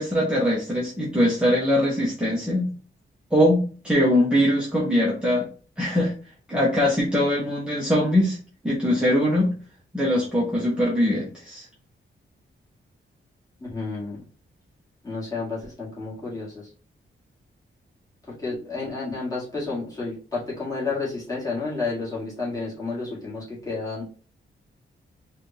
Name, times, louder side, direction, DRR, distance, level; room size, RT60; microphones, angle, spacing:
voice 1, 0.0-2.7 3.3-5.5 5.8-6.1 6.5-8.4 8.6-9.6 9.9-11.6, equal, 5° right, -6 dB, 1.1 m, -22 dB
voice 2, 13.6-14.2 15.0-16.5 18.3-24.0, left 3 dB, 15° left, -7 dB, 2.2 m, -31 dB
4.1 x 2.6 x 3.4 m, 0.38 s
wide cardioid pair, 150°, 20 cm